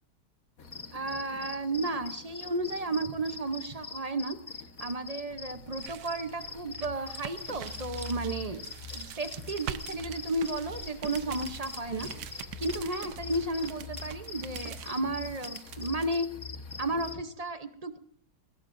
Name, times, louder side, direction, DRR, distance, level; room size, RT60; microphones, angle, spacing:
sound 1, 0.6-17.2, left 4 dB, 60° left, 1.9 m, -47 dB
sound 2, 0.6-17.3, left 4 dB, 35° left, 1.0 m, -44 dB
voice 1, 0.9-4.4 4.8-8.6 8.9-16.3 16.8-18.0, right 2 dB, 30° right, 9 dB, 0.7 m, -33 dB
sound 3, 5.3-16.2, right 10 dB, 75° right, 1.2 m, -45 dB
21.0 x 17.0 x 2.6 m, 0.63 s
omnidirectional pair, 1.7 m